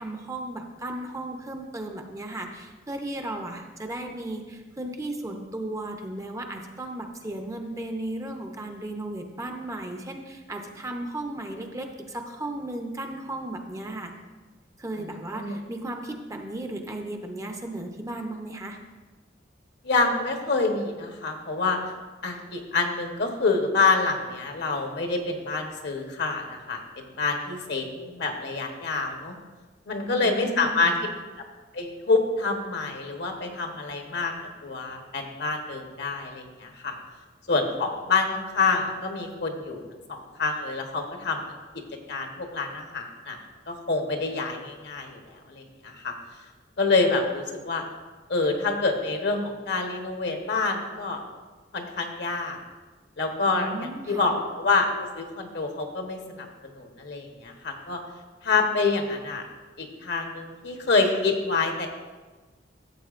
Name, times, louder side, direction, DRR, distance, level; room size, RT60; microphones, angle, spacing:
voice 1, 0.0-14.1 14.8-18.8 30.0-31.0 53.5-54.3, right 1 dB, 15° right, 4 dB, 0.7 m, -35 dB
voice 2, 15.0-15.6 19.8-21.8 22.2-29.3 29.9-30.9 31.7-34.3 34.6-36.9 37.5-39.8 40.1-41.4 42.1-43.4 43.7-46.1 46.8-47.8 48.3-51.2 51.7-52.6 53.2-54.9 55.2-56.5 56.7-58.0 58.4-59.4 59.8-61.9, left 3 dB, 65° left, 3 dB, 1.1 m, -27 dB
13.0 x 7.6 x 2.5 m, 1.3 s
head